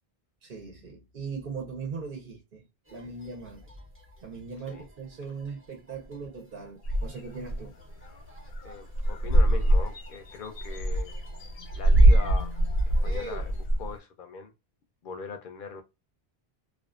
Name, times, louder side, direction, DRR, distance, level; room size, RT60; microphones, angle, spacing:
voice 1, 0.4-2.6 2.9-3.6 4.2-7.7, right 5 dB, 55° right, 0.8 m, -39 dB
sound 1, 2.8-13.7, equal, 15° right, 0.6 m, -50 dB
sound 2, 6.8-7.6 8.0-8.1 8.4-8.7 8.9-13.9, right 1 dB, 90° left, 1.0 m, -23 dB
voice 2, 8.6-11.1 11.8-12.6 13.0-14.5 15.0-15.8, left 5 dB, 60° left, 0.6 m, -41 dB
2.5 x 2.4 x 2.3 m
omnidirectional pair, 1.1 m